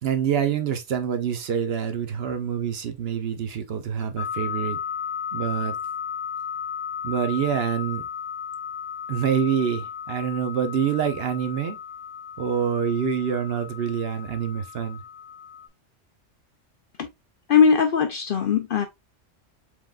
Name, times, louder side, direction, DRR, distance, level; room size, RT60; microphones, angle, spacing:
voice 1, 0.0-4.8 5.3-5.8 7.0-8.0 9.1-11.8 12.4-15.0, right 7 dB, 60° right, 0.9 m, -26 dB
sound 1, 4.2-15.7, left 8 dB, 30° left, 0.9 m, -35 dB
voice 2, 17.5-18.9, left 6 dB, 60° left, 0.6 m, -19 dB
4.7 x 3.7 x 2.3 m
omnidirectional pair, 1.3 m